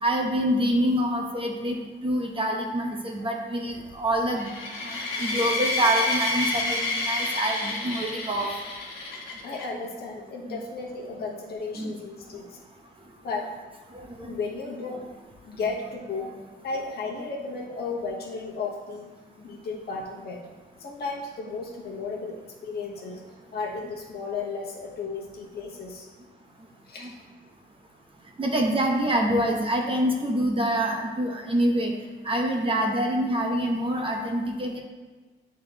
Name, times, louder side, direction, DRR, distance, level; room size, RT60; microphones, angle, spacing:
voice 1, 0.0-4.5 4.8-8.5 10.5-10.6 11.8-11.9 13.9-14.4 27.0-27.1 28.4-31.9 32.2-34.8, right 1 dB, 25° right, 0 dB, 1.0 m, -26 dB
sound 1, 4.4-9.6, left 2 dB, 85° left, 1.2 m, -29 dB
voice 2, 9.4-12.6 13.2-13.5 14.3-15.1 15.4-16.3 16.6-19.1 19.4-20.4 20.8-23.2 23.5-26.1 26.8-27.1, left 4 dB, 50° left, -3 dB, 1.2 m, -34 dB
8.5 x 3.8 x 3.0 m, 1.3 s
cardioid pair, 90°, 20 cm